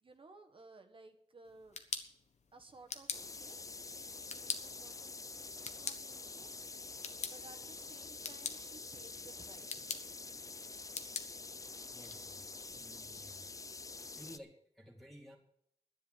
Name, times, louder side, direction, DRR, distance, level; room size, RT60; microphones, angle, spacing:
voice 1, 0.0-1.8 2.5-6.5 7.3-10.0, right 3 dB, 45° right, 6 dB, 1.6 m, -59 dB
sound 1, 1.5-13.2, left 5 dB, 70° left, 1.4 m, -47 dB
sound 2, 3.1-14.4, left 3 dB, 25° left, 0.6 m, -47 dB
voice 2, 11.9-13.5 14.1-15.4, equal, ahead, -3 dB, 2.5 m, -55 dB
11.0 x 10.0 x 7.4 m, 0.71 s
wide cardioid pair, 130°, 12 cm